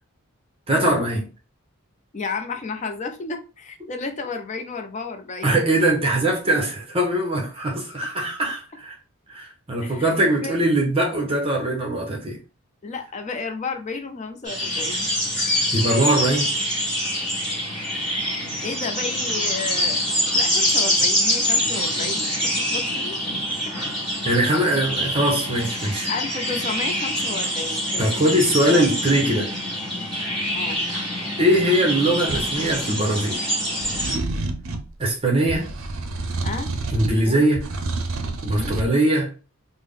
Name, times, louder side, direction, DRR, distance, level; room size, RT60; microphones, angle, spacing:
voice 1, 0.7-1.3 5.4-9.0 9.3-12.4 15.7-16.5 24.2-26.1 28.0-29.5 31.4-33.4 35.0-35.7 36.9-37.7 38.4-39.3, right 1 dB, 25° right, 0.7 m, -21 dB
voice 2, 2.1-5.6 9.8-10.1 10.4-10.6 12.8-15.1 18.6-20.0 20.3-23.3 26.1-28.1 28.7-29.0 30.5-30.8 35.5-35.7 36.4-36.7 37.3-37.4 38.5-38.8, left 4 dB, 30° left, 0.4 m, -32 dB
sound 1, 14.4-34.1, equal, 5° left, 1.2 m, -25 dB
sound 2, 32.3-32.8 33.8-34.9 35.5-37.2 37.6-38.9, right 2 dB, 65° right, 0.5 m, -29 dB
3.4 x 2.0 x 3.5 m
head